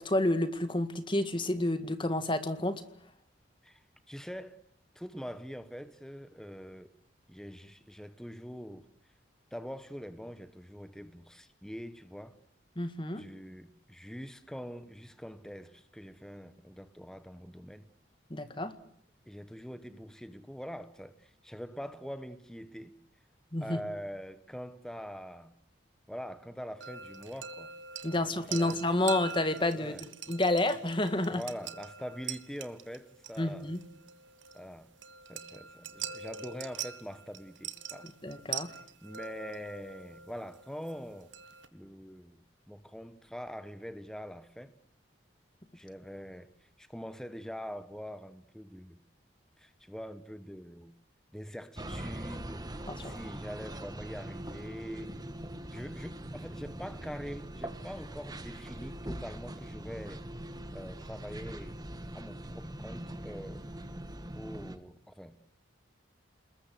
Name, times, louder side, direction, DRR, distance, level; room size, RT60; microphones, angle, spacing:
voice 1, 0.0-2.8 12.8-13.2 18.3-18.7 23.5-23.8 28.0-30.0 30.3-31.4 33.4-33.8 38.2-38.7 52.9-53.2, left 1 dB, 25° left, 1.9 m, -29 dB
voice 2, 3.6-4.6 4.9-6.9 7.3-8.9 9.5-12.4 13.2-17.9 19.3-22.9 23.6-25.5 26.1-27.7 28.1-28.8 29.8-30.0 31.3-33.7 34.5-34.9 35.3-38.1 38.7-41.3 41.7-42.4 42.7-44.7 45.7-49.0 49.6-50.9 51.3-55.1 55.7-60.2 60.7-61.8 62.1-63.6 64.3-65.3, equal, 5° left, 1.2 m, -44 dB
sound 1, 26.8-41.7, right 8 dB, 80° right, 1.6 m, -44 dB
sound 2, 51.8-64.8, right 1 dB, 20° right, 1.6 m, -42 dB
28.5 x 21.0 x 7.9 m
head